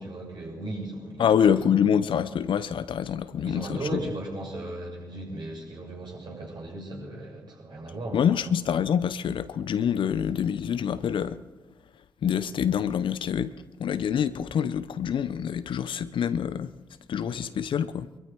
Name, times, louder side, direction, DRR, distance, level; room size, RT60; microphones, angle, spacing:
voice 1, 0.0-1.5 3.4-8.4 17.2-17.4, right 1 dB, 55° right, 6.7 m, -36 dB
voice 2, 1.2-3.8 8.1-11.4 12.2-13.5 13.8-16.7 17.1-18.1, left 8 dB, 65° left, 0.7 m, -26 dB
22.5 x 14.0 x 4.6 m
hypercardioid pair, 45°, 9 cm